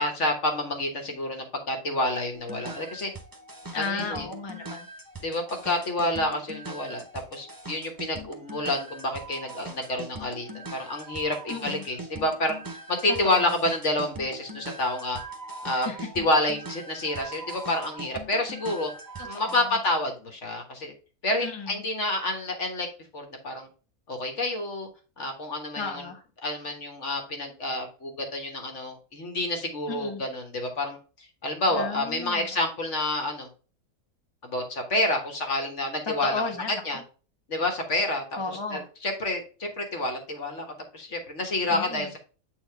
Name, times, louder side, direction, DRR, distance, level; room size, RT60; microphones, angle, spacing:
voice 1, 0.0-3.1 3.7-4.3 5.2-7.0 7.3-12.6 12.9-15.2 15.6-15.9 16.1-18.9 19.2-20.9 21.2-22.9 23.1-23.7 24.1-24.9 25.2-26.0 26.4-31.0 31.4-33.5 34.4-36.4 36.8-37.0 37.5-38.2 38.7-40.7 40.9-42.2, left 1 dB, 50° left, 4 dB, 1.7 m, -28 dB
sound 1, 2.3-19.6, right 2 dB, 20° right, 0.6 m, -41 dB
voice 2, 3.7-4.9 11.5-11.8 13.1-13.5 15.7-16.1 19.2-19.8 21.4-21.8 25.7-26.2 29.9-30.2 31.7-32.6 36.1-37.0 38.4-38.8 41.7-42.1, left 4 dB, 20° left, 3 dB, 0.9 m, -34 dB
7.8 x 4.2 x 3.4 m, 0.36 s
omnidirectional pair, 1.6 m